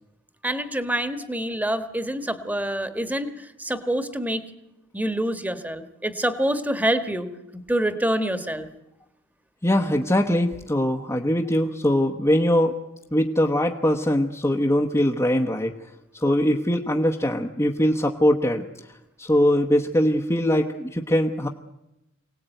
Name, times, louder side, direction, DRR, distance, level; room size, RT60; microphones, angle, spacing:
voice 1, 0.4-3.3 3.6-4.4 4.9-7.3 7.7-8.7, right 1 dB, 10° right, 10 dB, 1.5 m, -26 dB
voice 2, 9.6-12.8 13.1-21.5, left 1 dB, 15° left, 0 dB, 1.1 m, -22 dB
24.5 x 18.0 x 9.2 m, 0.92 s
head